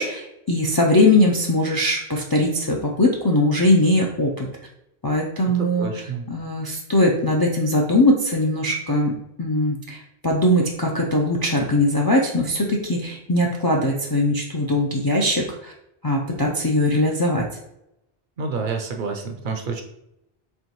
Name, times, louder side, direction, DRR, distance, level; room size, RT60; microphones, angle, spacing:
voice 1, 0.0-4.5 5.0-5.9 6.3-15.7 16.0-17.4, left 1 dB, 40° left, -1 dB, 0.3 m, -20 dB
voice 2, 5.5-6.2 18.4-19.8, right 4 dB, 60° right, 4 dB, 0.7 m, -29 dB
4.3 x 3.0 x 2.9 m, 0.82 s
omnidirectional pair, 1.0 m